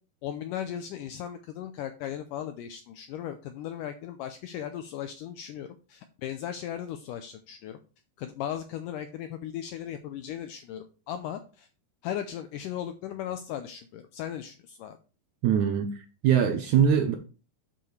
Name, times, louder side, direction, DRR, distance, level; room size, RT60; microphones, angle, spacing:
voice 1, 0.2-7.8 8.2-11.7 12.0-15.0, left 10 dB, 85° left, 1.9 m, -37 dB
voice 2, 15.4-15.9 16.2-17.1, right 8 dB, 80° right, 1.8 m, -22 dB
8.7 x 7.1 x 3.2 m
omnidirectional pair, 4.4 m